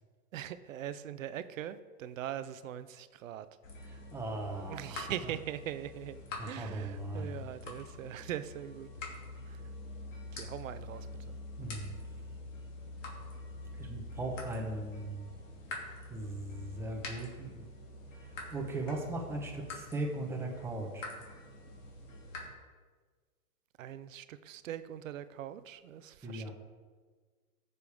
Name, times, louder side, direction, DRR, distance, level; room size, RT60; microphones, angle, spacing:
voice 1, 0.3-3.5 4.6-8.9 9.5-9.6 10.3-11.4 23.8-26.5, right 10 dB, 60° right, 13 dB, 0.7 m, -41 dB
sound 1, 3.6-22.5, left 2 dB, 55° left, 2.7 m, -46 dB
voice 2, 3.8-5.3 6.4-7.4 11.6-11.9 13.7-15.3 16.1-17.6 18.1-21.1 26.2-26.5, right 2 dB, 5° right, 0 dB, 1.0 m, -39 dB
14.5 x 6.8 x 3.5 m, 1.5 s
hypercardioid pair, 145°, 46 cm